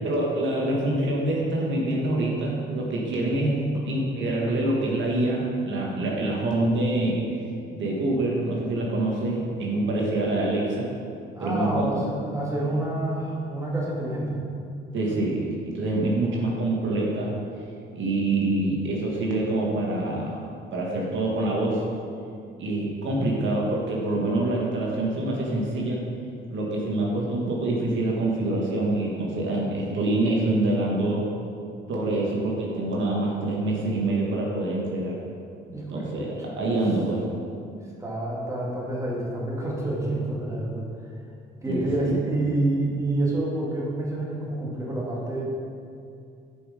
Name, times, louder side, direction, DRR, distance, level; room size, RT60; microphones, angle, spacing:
voice 1, 0.0-7.2 7.7-10.9 11.4-11.9 14.9-17.3 17.9-21.8 22.6-26.0 26.5-31.3 31.9-35.2 35.9-37.3 41.7-42.1, right 2 dB, 70° right, -3 dB, 1.6 m, -26 dB
voice 2, 11.4-14.4 23.0-23.3 35.7-36.6 38.0-40.8 41.6-45.4, right 2 dB, 15° right, -4 dB, 2.3 m, -28 dB
10.0 x 5.7 x 5.0 m, 2.4 s
cardioid pair, 90°, 20 cm